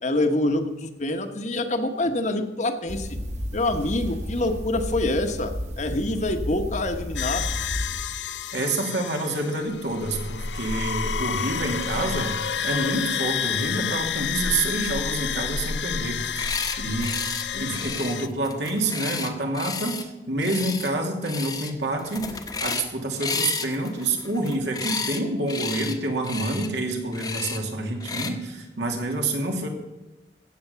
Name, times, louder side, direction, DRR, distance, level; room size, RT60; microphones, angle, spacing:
voice 1, 0.0-3.2 3.5-5.5 5.8-7.8, left 2 dB, 40° left, 6 dB, 1.2 m, -26 dB
sound 1, 2.9-8.0, equal, 40° right, 1.7 m, -32 dB
sound 2, 7.2-18.3, left 7 dB, 80° left, 0.6 m, -30 dB
voice 2, 8.5-12.4 12.6-16.5 16.8-17.2 17.5-29.7, right 2 dB, 75° right, 2 dB, 2.6 m, -28 dB
sound 3, 16.2-16.8 17.0-17.4 17.7-20.0 20.4-20.9 21.2-21.7 22.0-22.9 23.2-25.2 25.5-26.0 26.2-26.7 27.1-27.6 28.0-28.3, left 4 dB, 20° left, 1.1 m, -31 dB
15.5 x 8.0 x 6.9 m, 1.0 s
head